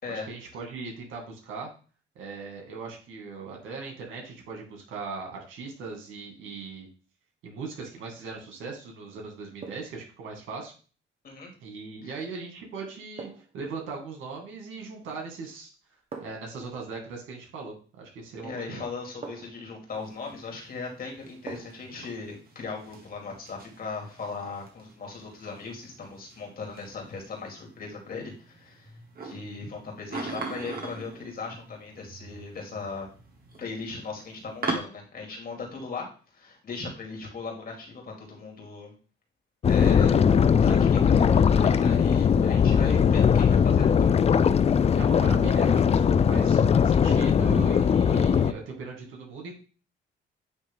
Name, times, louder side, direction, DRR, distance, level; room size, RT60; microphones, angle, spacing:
voice 1, 0.1-1.7 2.2-6.9 7.4-10.7 11.6-15.7 16.2-18.8 44.9-49.5, right 4 dB, 80° right, 1 dB, 2.2 m, -39 dB
sound 1, 8.0-8.4 9.6-10.0 12.1-12.3 13.2-13.6 15.0-15.4 16.1-16.6 18.2-18.3 19.2-19.7 21.5-21.9 22.3-22.4, right 4 dB, 30° right, 1.2 m, -44 dB
voice 2, 18.4-28.9 29.2-33.1 33.6-36.1 36.3-38.9 39.7-40.2 40.6-44.1, left 4 dB, 50° left, 0 dB, 2.5 m, -38 dB
sound 2, 19.9-34.8, right 3 dB, 50° right, 1.8 m, -41 dB
sound 3, 39.6-48.5, left 7 dB, 30° left, 0.4 m, -20 dB
9.1 x 3.1 x 3.7 m, 0.38 s
cardioid pair, 90°, 20 cm